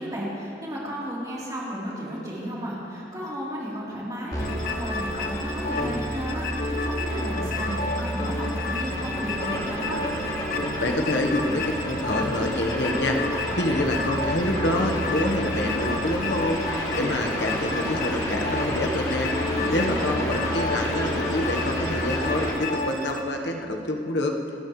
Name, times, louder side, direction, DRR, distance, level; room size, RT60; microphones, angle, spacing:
voice 1, 0.0-10.0 19.5-20.3, equal, 20° right, -7 dB, 3.6 m, -33 dB
sound 1, 4.3-22.5, equal, 25° left, 3.9 m, -30 dB
sound 2, 4.4-23.2, left 3 dB, 50° left, 1.2 m, -32 dB
voice 2, 10.8-13.2 13.5-16.6 16.9-19.3 19.7-24.3, left 1 dB, 85° left, 2 dB, 1.3 m, -27 dB
29.0 x 13.0 x 3.2 m, 2.9 s
head